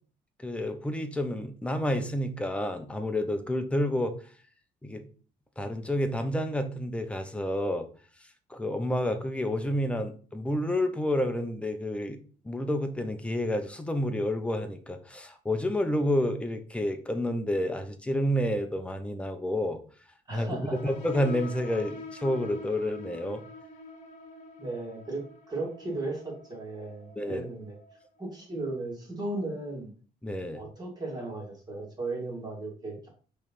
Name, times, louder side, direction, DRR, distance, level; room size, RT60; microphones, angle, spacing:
voice 1, 0.4-4.2 4.8-5.0 5.6-7.9 8.5-12.2 12.4-19.8 20.3-23.4 27.2-27.5 30.2-30.6, left 1 dB, 5° left, 6 dB, 0.7 m, -29 dB
voice 2, 20.3-20.9 24.6-27.8 28.2-29.9 30.5-33.1, right 2 dB, 25° right, -1 dB, 2.4 m, -36 dB
sound 1, 20.7-28.0, left 3 dB, 45° left, 1.2 m, -45 dB
5.5 x 3.3 x 5.4 m, 0.41 s
cardioid pair, 135°, 17 cm